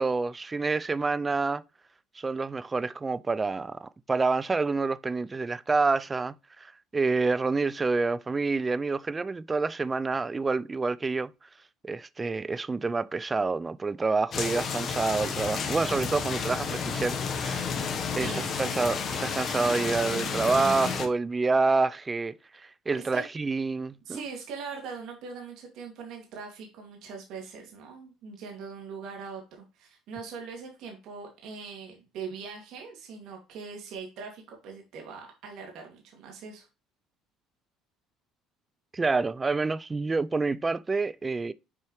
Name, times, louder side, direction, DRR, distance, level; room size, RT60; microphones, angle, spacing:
voice 1, 0.0-1.6 2.2-11.3 11.8-17.6 18.2-24.2 38.9-41.5, right 3 dB, 20° right, 0.4 m, -28 dB
sound 1, 14.3-21.1, left 5 dB, 45° left, 1.2 m, -31 dB
voice 2, 18.2-18.8 23.1-23.2 24.1-36.7, right 5 dB, 70° right, 2.3 m, -41 dB
7.5 x 4.6 x 3.2 m
supercardioid pair, 100°, 0 cm